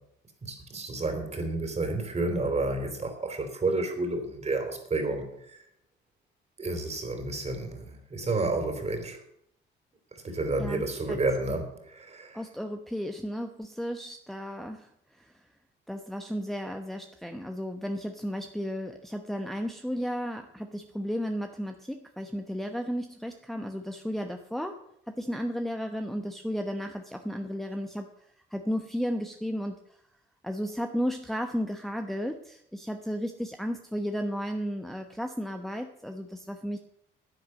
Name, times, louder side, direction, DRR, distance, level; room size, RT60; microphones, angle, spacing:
voice 1, 0.4-5.6 6.6-9.2 10.1-12.4, right 2 dB, 35° right, 6 dB, 3.5 m, -30 dB
voice 2, 10.6-11.2 12.3-15.4 15.9-24.8 25.2-28.1 28.5-29.8 30.4-36.8, equal, ahead, 4 dB, 1.0 m, -34 dB
10.5 x 9.3 x 7.8 m, 0.74 s
cardioid pair, 90°, 20 cm